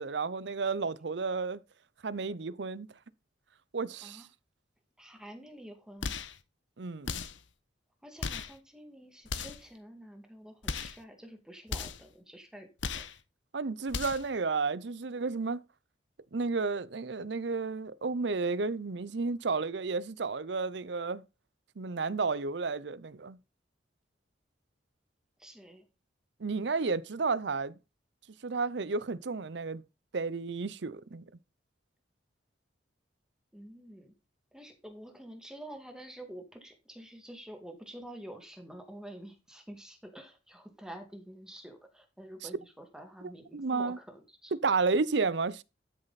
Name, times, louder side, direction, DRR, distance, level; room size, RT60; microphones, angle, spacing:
voice 1, 0.0-1.6 2.0-2.9 3.7-4.3 6.8-7.2 13.5-15.6 16.3-21.2 21.8-23.4 26.4-27.8 28.4-29.8 30.1-31.2 43.5-44.0 44.6-45.6, right 4 dB, 65° right, 0.6 m, -32 dB
voice 2, 5.0-6.2 8.0-12.7 12.9-13.1 25.4-25.9 33.5-34.1 34.5-44.8, right 1 dB, 5° right, 2.1 m, -48 dB
sound 1, 6.0-6.4 7.0-7.5 8.2-8.6 9.2-9.7 10.6-11.0 11.7-12.1 12.8-13.2 13.9-14.3, left 5 dB, 80° left, 1.0 m, -36 dB
12.5 x 6.5 x 4.1 m
head